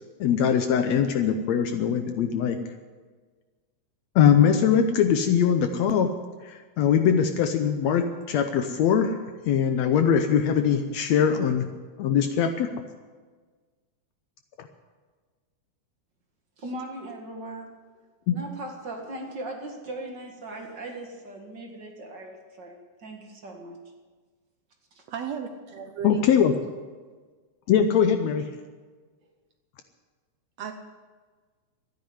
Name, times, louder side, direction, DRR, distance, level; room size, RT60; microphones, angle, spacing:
voice 1, 0.2-2.6 4.1-6.1 6.4-9.2 9.5-11.7 12.0-12.7 14.6-14.7 18.3-18.4 26.0-26.5 27.7-28.4, left 8 dB, 70° left, 7 dB, 1.8 m, -22 dB
voice 2, 16.6-17.8 18.3-23.8 25.0-25.1, right 1 dB, 40° right, 1 dB, 2.0 m, -39 dB
voice 3, 25.1-26.2 30.6-30.7, right 7 dB, 70° right, 6 dB, 1.7 m, -34 dB
13.0 x 10.0 x 9.5 m, 1.4 s
omnidirectional pair, 3.6 m